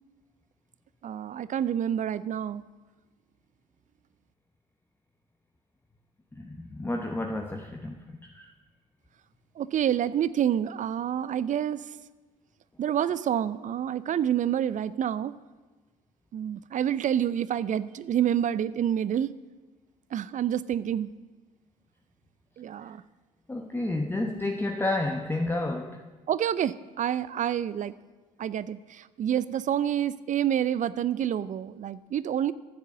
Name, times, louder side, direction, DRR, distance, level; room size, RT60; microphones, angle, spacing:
voice 1, 1.0-2.6 9.6-11.9 12.8-15.3 16.3-19.3 20.1-21.1 22.6-23.0 26.3-27.9 28.4-32.5, right 10 dB, 45° right, 17 dB, 0.5 m, -28 dB
voice 2, 6.4-8.5 23.5-26.0, left 2 dB, 10° left, 4 dB, 0.9 m, -31 dB
10.5 x 7.3 x 7.2 m, 1.3 s
hypercardioid pair, 55°, 18 cm